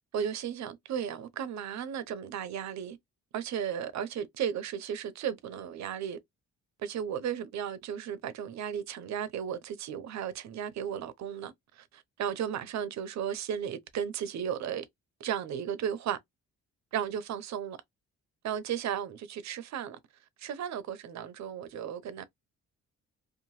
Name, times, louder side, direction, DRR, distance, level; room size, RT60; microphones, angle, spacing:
voice 1, 0.1-3.0 3.3-6.2 6.8-14.8 15.2-16.2 16.9-17.8 18.4-20.0 20.4-22.2, right 8 dB, 65° right, 0.7 m, -35 dB
2.8 x 2.3 x 3.0 m
cardioid pair, 90°, 30 cm